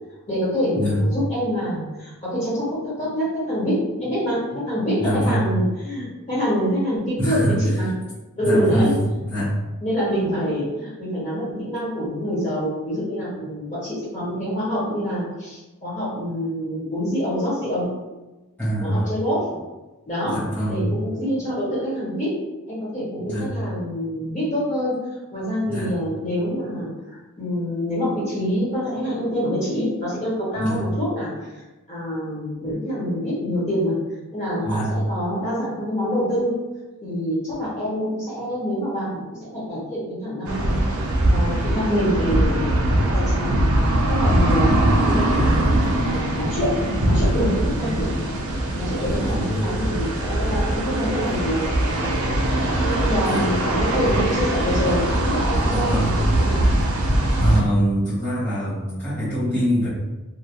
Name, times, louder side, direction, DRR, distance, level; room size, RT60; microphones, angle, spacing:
voice 1, 0.3-7.9 8.4-9.2 9.8-17.9 18.8-19.5 20.1-20.4 20.7-22.3 22.7-24.9 25.3-33.9 34.3-36.5 37.0-41.0 41.2-43.5 44.1-45.5 46.0-46.7 47.0-48.1 48.8-52.1 52.8-56.6, equal, 35° left, -8 dB, 1.3 m, -26 dB
voice 2, 5.0-5.5 7.2-7.6 8.4-8.9 9.2-9.5 18.6-19.1 20.2-20.8 23.3-23.5 25.7-25.9 30.6-30.8 34.6-34.9 44.4-44.8 49.0-49.5 53.2-53.5 55.7-56.2 57.4-59.9, equal, 5° left, -14 dB, 0.9 m, -24 dB
sound 1, 40.4-57.6, right 1 dB, 85° right, 0.6 m, -21 dB
2.3 x 2.3 x 3.0 m, 1.1 s
head